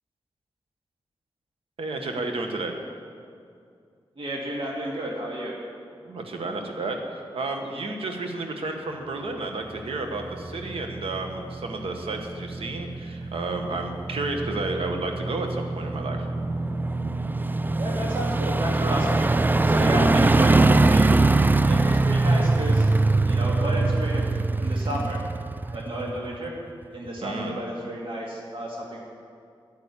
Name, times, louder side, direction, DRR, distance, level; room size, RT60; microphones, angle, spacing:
voice 1, 1.8-2.8 6.0-16.3 27.2-27.5, right 2 dB, 85° right, 3 dB, 1.6 m, -31 dB
voice 2, 4.2-5.5 17.8-19.3 19.6-21.0 21.6-22.9 23.2-24.2 24.6-25.2 25.7-26.5 26.9-29.0, equal, 65° right, -3 dB, 2.2 m, -31 dB
sound 1, 9.9-26.5 26.8-26.9, right 2 dB, 20° right, 0.4 m, -23 dB
10.5 x 9.8 x 8.5 m, 2.4 s
cardioid pair, 70°, 9 cm